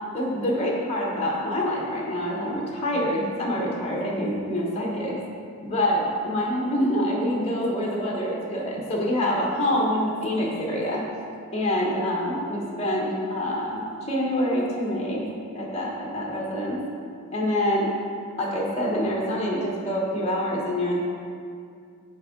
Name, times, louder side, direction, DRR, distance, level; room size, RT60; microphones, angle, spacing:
voice 1, 0.1-5.2 5.6-11.0 11.5-15.3 15.5-16.8 17.3-17.9 18.4-21.0, equal, 30° left, -3 dB, 0.9 m, -26 dB
6.6 x 4.3 x 3.6 m, 2.3 s
head